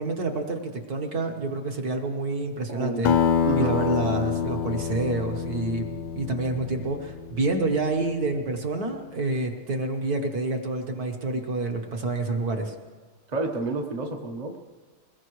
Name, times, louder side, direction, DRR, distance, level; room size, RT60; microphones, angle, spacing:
voice 1, 0.0-3.1 3.6-12.7, right 2 dB, 50° right, 3 dB, 1.5 m, -28 dB
voice 2, 2.7-3.1 3.4-3.8 13.3-14.6, right 3 dB, 30° right, 2 dB, 0.7 m, -29 dB
Acoustic guitar, 3.0-7.9, left 8 dB, 70° left, 1.0 m, -27 dB
22.0 x 20.5 x 3.1 m, 1.4 s
omnidirectional pair, 2.4 m